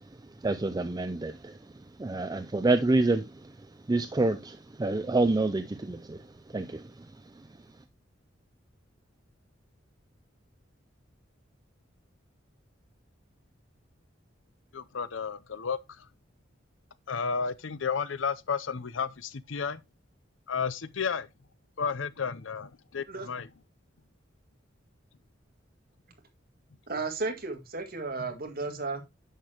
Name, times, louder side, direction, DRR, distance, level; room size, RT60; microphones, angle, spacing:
voice 1, 0.4-1.7 2.0-3.5 3.9-6.2 6.5-7.1, right 2 dB, 20° right, 0.4 m, -28 dB
voice 2, 14.7-15.8 17.1-19.8 20.5-21.3 21.8-23.5 28.2-28.3, left 6 dB, 85° left, 0.7 m, -32 dB
voice 3, 26.9-29.0, right 3 dB, 50° right, 2.0 m, -34 dB
10.0 x 6.8 x 2.9 m
head